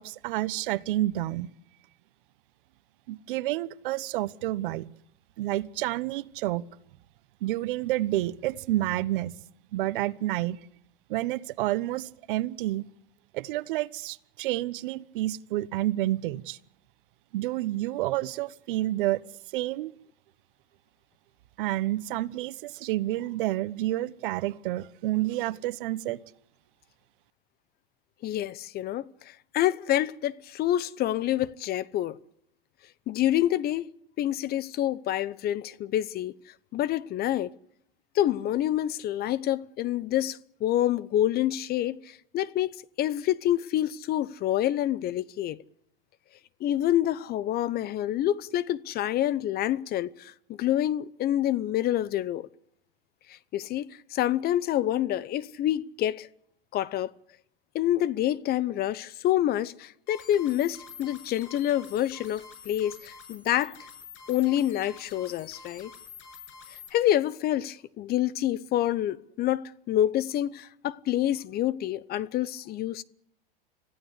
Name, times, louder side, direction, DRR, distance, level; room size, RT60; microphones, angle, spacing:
voice 1, 0.0-1.5 3.1-4.9 5.4-6.6 7.4-9.3 9.7-10.6 11.1-12.9 13.3-16.6 17.3-19.2 19.5-19.9 21.6-26.2, right 16 dB, 65° right, 1.1 m, -29 dB
voice 2, 28.2-32.2 33.1-33.9 34.2-36.3 36.7-37.5 38.1-45.6 46.6-52.5 53.3-56.3 56.7-57.1 57.7-63.9 64.3-65.9 66.9-73.0, left 12 dB, 35° left, 0.9 m, -27 dB
sound 1, 60.1-66.9, left 6 dB, 60° left, 7.5 m, -47 dB
26.0 x 16.0 x 8.2 m
hypercardioid pair, 115°, 29 cm